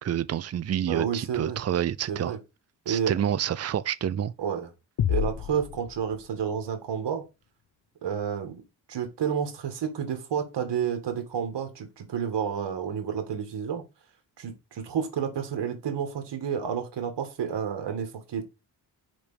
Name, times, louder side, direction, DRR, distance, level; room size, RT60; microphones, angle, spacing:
voice 1, 0.0-2.4 2.9-4.3, right 10 dB, 40° right, 0.5 m, -28 dB
voice 2, 0.9-1.6 2.1-2.4 2.9-3.2 4.4-4.7 5.1-7.2 8.0-8.6 8.9-13.8 14.4-18.4, right 7 dB, 75° right, 2.0 m, -30 dB
sound 1, 5.0-6.7, left 10 dB, 60° left, 0.7 m, -30 dB
5.2 x 5.1 x 5.0 m
cardioid pair, 85°, 42 cm